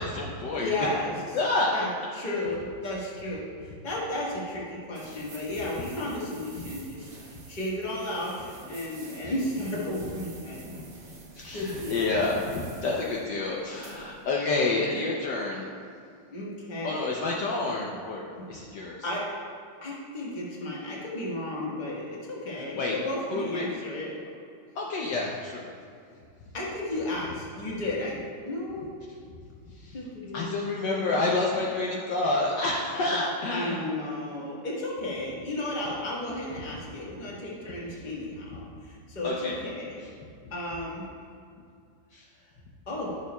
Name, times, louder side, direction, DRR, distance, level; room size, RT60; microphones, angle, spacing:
voice 1, 0.0-0.7 1.3-1.8 5.1-5.2 9.2-9.3 11.4-15.7 16.8-18.2 18.5-19.0 22.6-23.0 23.3-23.7 24.8-25.7 29.7-30.0 30.3-33.9 39.2-39.6 42.1-42.2, left 2 dB, 70° left, -3 dB, 1.3 m, -29 dB
voice 2, 0.5-1.2 1.7-1.9 2.1-10.7 11.5-12.2 16.3-17.1 18.3-18.5 19.0-19.2 19.8-24.2 26.5-28.9 29.9-31.3 32.9-33.2 33.5-40.0 40.5-41.0 42.9-43.1, left 1 dB, 25° left, -5 dB, 1.3 m, -33 dB
sound 1, 4.9-14.3, right 3 dB, 50° right, 1.4 m, -48 dB
11.5 x 6.6 x 2.3 m, 2.4 s
omnidirectional pair, 2.2 m